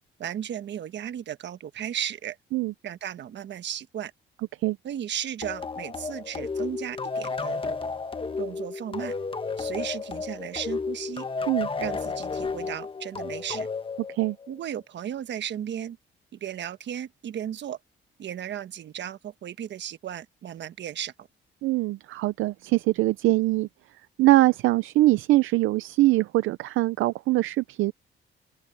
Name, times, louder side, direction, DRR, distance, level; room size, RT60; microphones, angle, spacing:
voice 1, 0.2-2.4 2.8-4.1 4.8-7.8 8.4-9.1 9.6-11.3 11.8-13.7 14.5-16.0 16.3-17.8 18.2-21.3, right 10 dB, 65° right, 1.3 m, -35 dB
sound 1, 5.4-14.7, left 4 dB, 25° left, 1.4 m, -32 dB
voice 2, 21.6-23.7 24.2-27.9, right 18 dB, 85° right, 0.5 m, -22 dB
open air
cardioid pair, 90°, 20 cm